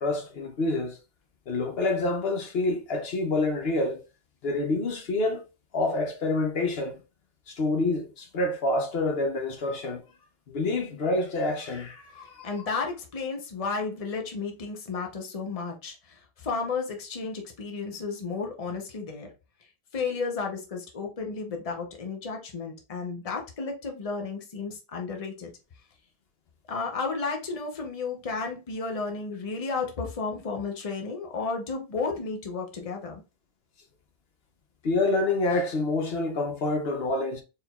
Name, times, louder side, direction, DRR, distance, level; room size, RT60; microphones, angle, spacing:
voice 1, 0.0-1.0 1.5-4.0 4.4-5.4 5.7-7.0 7.5-10.0 10.5-12.5 34.8-37.4, left 2 dB, 75° left, 1.0 m, -27 dB
voice 2, 12.1-19.3 19.9-25.5 26.7-33.2, left 4 dB, 35° left, 0.9 m, -33 dB
4.4 x 3.7 x 2.3 m
omnidirectional pair, 1.0 m